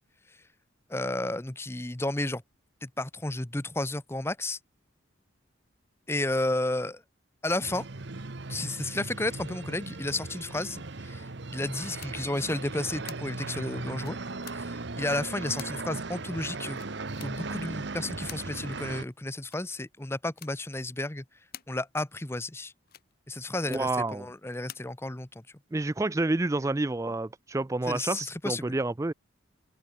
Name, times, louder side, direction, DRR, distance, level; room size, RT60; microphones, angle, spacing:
voice 1, 0.9-2.4 2.8-4.6 6.1-7.0 7.4-7.9 8.5-11.2 11.5-14.2 14.5-16.8 17.2-21.2 21.7-22.7 23.3-25.4 27.9-28.8, left 2 dB, 10° left, 0.8 m, -32 dB
sound 1, 7.6-19.0, right 3 dB, 55° right, 1.0 m, -38 dB
sound 2, 12.0-12.1 13.1-13.2 14.0-14.6 15.6-15.7 16.7-17.3 18.3-18.4 19.5-19.7 20.3-20.5 21.5-21.7 22.9-23.1 23.7-23.9 24.7-24.8, left 11 dB, 50° left, 1.2 m, -45 dB
voice 2, 23.7-24.3 25.7-29.1, right 2 dB, 15° right, 0.3 m, -29 dB
open air
head